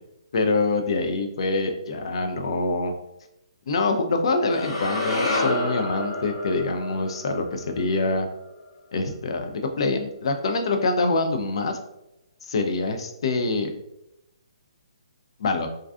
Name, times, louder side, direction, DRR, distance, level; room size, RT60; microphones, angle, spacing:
voice 1, 0.3-3.0 3.7-8.3 8.9-11.8 12.4-13.7 15.4-15.7, left 3 dB, 60° left, 5 dB, 0.4 m, -25 dB
sound 1, 4.5-8.7, left 2 dB, 90° left, 0.8 m, -29 dB
2.4 x 2.3 x 2.3 m, 0.84 s
hypercardioid pair, 145°, 3 cm